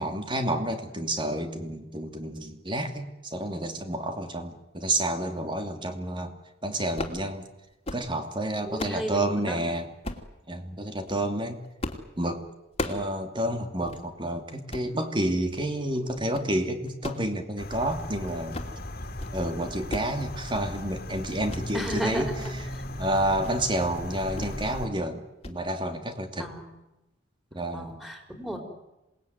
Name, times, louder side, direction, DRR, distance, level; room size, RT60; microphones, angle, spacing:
voice 1, 0.0-6.3 6.6-7.4 7.9-9.9 10.5-11.6 12.2-12.4 12.8-18.6 19.3-22.3 23.0-26.5 27.5-27.9, right 1 dB, 25° right, 6 dB, 2.8 m, -29 dB
sound 1, 6.8-7.2 7.7-8.1 8.5-9.0 10.0-10.3 10.9-11.2 11.8-12.1 12.4-13.1 13.4-13.5 13.8-14.0 14.5-14.9 15.4-15.7 16.1-16.5 16.9-18.1 18.4-18.8 19.0-19.4 19.6-20.2 20.4-20.9 21.5-21.7 22.1-22.5 22.9-23.0 23.4-23.6 24.4-24.6 24.9-25.1 25.4-25.6, left 2 dB, 30° left, 2.7 m, -37 dB
voice 2, 8.7-9.6 21.7-22.5 26.4-26.7 27.7-28.6, equal, ahead, 3 dB, 5.0 m, -34 dB
sound 2, 17.6-24.9, left 1 dB, 55° left, 2.7 m, -37 dB
27.0 x 20.0 x 9.5 m, 0.95 s
head